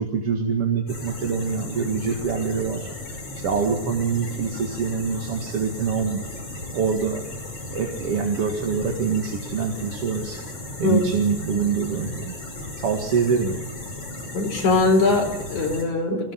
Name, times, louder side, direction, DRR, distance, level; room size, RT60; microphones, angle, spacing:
voice 1, 0.0-2.9 3.3-6.2 6.7-7.2 7.7-10.4 10.8-12.3 12.8-13.7, right 6 dB, 55° right, 3 dB, 2.7 m, -25 dB
sound 1, 0.9-15.8, left 2 dB, 50° left, 6.7 m, -35 dB
voice 2, 14.3-16.3, left 3 dB, 75° left, 2 dB, 5.9 m, -21 dB
24.0 x 17.5 x 9.9 m, 0.99 s
omnidirectional pair, 3.5 m